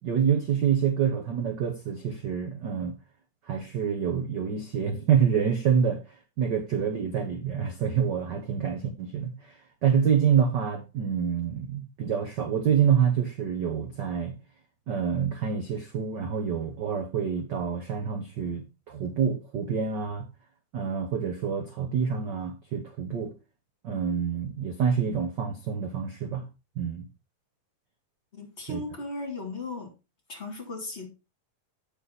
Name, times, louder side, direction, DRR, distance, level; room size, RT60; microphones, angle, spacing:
voice 1, 0.0-2.9 3.5-6.0 6.4-14.4 14.9-20.3 20.7-23.3 23.8-26.4 26.8-27.0 28.7-28.8, right 7 dB, 55° right, 1.2 m, -27 dB
voice 2, 28.3-29.9 30.3-31.1, left 2 dB, 20° left, 3.1 m, -36 dB
9.4 x 6.5 x 4.0 m
omnidirectional pair, 3.4 m